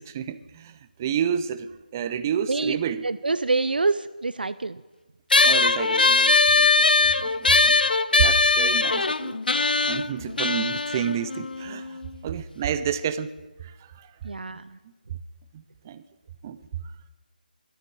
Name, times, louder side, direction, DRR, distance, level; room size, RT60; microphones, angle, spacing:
voice 1, 0.0-3.1 5.4-7.7 8.2-9.4 9.9-13.3 13.6-14.9 15.5-16.0 16.4-16.9, right 8 dB, 20° right, 0.4 m, -30 dB
voice 2, 3.0-4.8 7.6-7.7 14.2-14.8, right 3 dB, 75° right, 0.5 m, -26 dB
sound 1, 5.3-12.1, left 3 dB, 70° left, 0.5 m, -21 dB
12.5 x 8.9 x 7.9 m
figure-of-eight pair, 160°, 5 cm